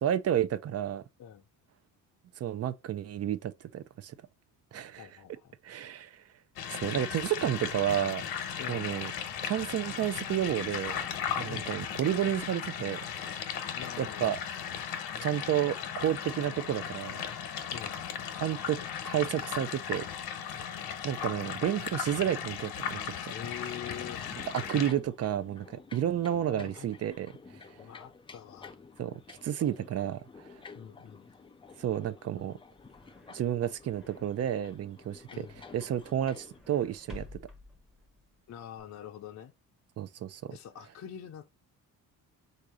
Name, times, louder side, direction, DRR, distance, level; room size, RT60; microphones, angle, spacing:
voice 1, 0.0-1.0 2.4-4.1 4.7-5.1 5.6-6.2 6.8-8.2 8.7-9.1 9.4-11.0 11.4-13.0 14.0-14.4 15.2-17.2 18.4-18.8 19.0-20.1 21.0-23.3 24.5-27.6 29.0-30.5 31.8-32.6 33.3-35.5 35.7-37.3 40.0-40.6, right 10 dB, 45° right, 0.5 m, -31 dB
voice 2, 5.0-5.5 8.6-8.9 11.5-11.7 13.7-14.3 17.7-18.1 23.3-24.2 26.5-26.9 27.8-28.8 30.7-31.3 35.3-35.6 38.5-39.5 40.5-41.4, left 9 dB, 50° left, 0.6 m, -44 dB
sound 1, 6.6-24.9, left 8 dB, 80° left, 1.1 m, -37 dB
sound 2, 23.5-36.6, left 5 dB, 15° left, 0.3 m, -51 dB
sound 3, 32.4-38.8, left 2 dB, ahead, 0.8 m, -53 dB
3.8 x 2.7 x 4.7 m
cardioid pair, 125°, 37 cm